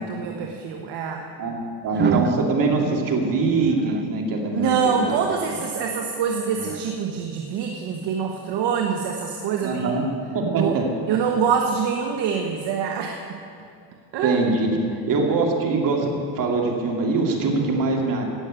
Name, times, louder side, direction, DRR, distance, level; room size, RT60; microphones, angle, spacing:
voice 1, 0.0-1.2 4.5-10.0 10.5-10.8 11.1-13.2 14.1-14.4, right 6 dB, 60° right, 2 dB, 1.3 m, -25 dB
voice 2, 1.4-5.2 9.6-10.0 10.3-10.8 14.2-14.7 15.1-18.3, right 3 dB, 45° right, 1 dB, 2.6 m, -23 dB
sound 1, 1.9-2.4 3.6-4.0 4.9-5.9 6.6-6.9, right 8 dB, 25° right, 0.5 m, -28 dB
16.0 x 6.6 x 8.8 m, 2.5 s
cardioid pair, 120°, 45 cm